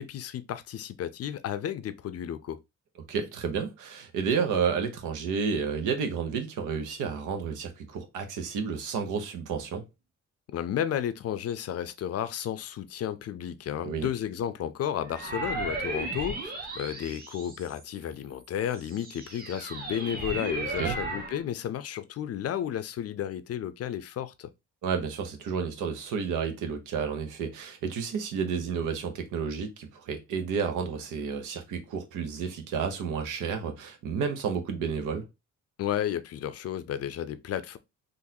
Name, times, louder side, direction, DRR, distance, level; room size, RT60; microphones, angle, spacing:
voice 1, 0.0-2.6 10.5-24.5 35.8-37.8, left 10 dB, 55° left, 0.5 m, -33 dB
voice 2, 3.1-9.8 13.8-14.1 20.8-21.0 24.8-35.3, right 6 dB, 90° right, 0.8 m, -31 dB
sound 1, 15.1-18.0 18.6-21.4, right 2 dB, 30° right, 1.1 m, -35 dB
3.8 x 2.5 x 2.7 m
cardioid pair, 90°, 30 cm